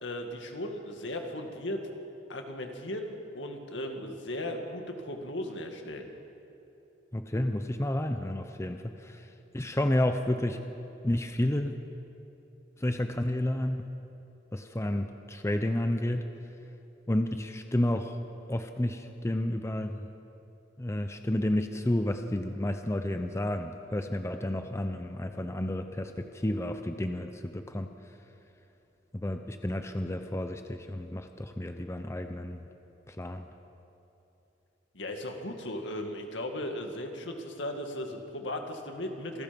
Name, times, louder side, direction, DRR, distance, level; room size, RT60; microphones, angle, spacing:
voice 1, 0.0-1.9 2.3-6.1 34.9-39.4, left 1 dB, 70° left, 4 dB, 2.2 m, -37 dB
voice 2, 7.1-10.6 11.0-11.8 12.8-13.9 14.5-16.3 17.1-18.2 18.5-20.0 20.8-27.9 29.1-32.7 33.1-33.5, left 1 dB, 15° left, 7 dB, 0.7 m, -31 dB
27.0 x 18.5 x 5.4 m, 3.0 s
head